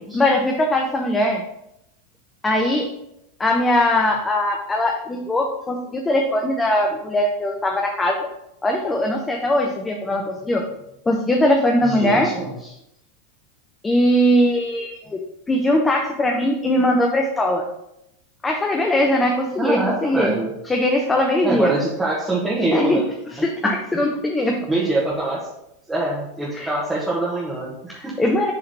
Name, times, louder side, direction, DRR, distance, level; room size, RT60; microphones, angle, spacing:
voice 1, 0.1-1.4 2.4-2.9 3.4-8.3 8.6-10.6 11.1-12.3 12.6-12.7 13.8-15.2 15.5-17.7 18.4-20.3 20.7-21.7 22.7-23.0 23.3-24.6 26.5-26.7 27.9-28.5, left 1 dB, 15° left, 1 dB, 0.7 m, -20 dB
voice 2, 11.8-12.5 19.6-20.5 21.4-23.0 23.6-23.7 24.7-25.4 25.9-28.1, right 2 dB, 10° right, -7 dB, 1.5 m, -24 dB
6.7 x 3.8 x 4.2 m, 0.81 s
figure-of-eight pair, 85°, 0 cm